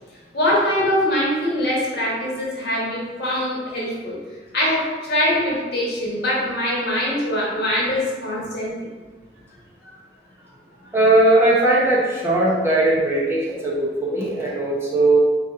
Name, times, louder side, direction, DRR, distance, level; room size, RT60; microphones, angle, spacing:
voice 1, 0.3-4.2 4.5-8.8 9.8-9.9, left 1 dB, 65° left, -5 dB, 1.3 m, -23 dB
voice 2, 10.9-15.2, right 2 dB, 15° right, -6 dB, 0.8 m, -18 dB
4.0 x 2.7 x 3.6 m, 1.3 s
head